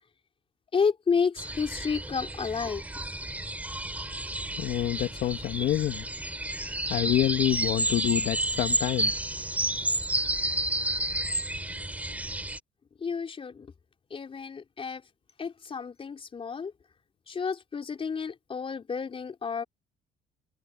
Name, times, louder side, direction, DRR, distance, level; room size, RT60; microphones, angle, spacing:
voice 1, 0.7-2.8 13.0-13.7 14.1-15.0 15.4-16.7 17.3-19.6, left 5 dB, 30° left, 4.4 m, -30 dB
sound 1, 1.4-12.6, right 1 dB, 10° right, 4.3 m, -31 dB
voice 2, 4.6-6.0 6.9-9.1, left 13 dB, 70° left, 1.8 m, -27 dB
cardioid pair, 110°, 17 cm